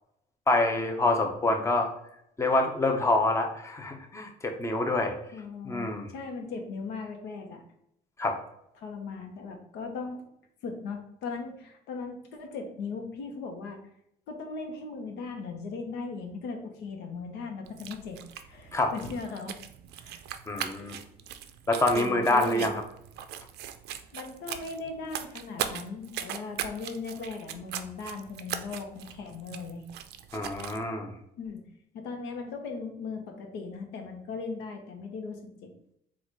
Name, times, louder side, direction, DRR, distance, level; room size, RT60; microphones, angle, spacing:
voice 1, 0.5-1.9 2.4-5.1 5.6-6.1 8.2-8.4 18.7-18.9 20.5-21.0 21.7-22.7 30.3-31.1, left 2 dB, 15° left, 4 dB, 0.7 m, -26 dB
voice 2, 5.3-7.6 8.8-10.2 10.6-13.8 14.3-18.2 18.4-19.5 20.0-20.2 20.6-21.0 21.9-22.7 24.1-29.8 31.4-31.6 31.9-35.7, left 4 dB, 85° left, 4 dB, 0.9 m, -38 dB
sound 1, 17.6-30.8, right 10 dB, 75° right, 0.4 m, -40 dB
4.1 x 2.4 x 4.5 m, 0.73 s
cardioid pair, 110°, 17 cm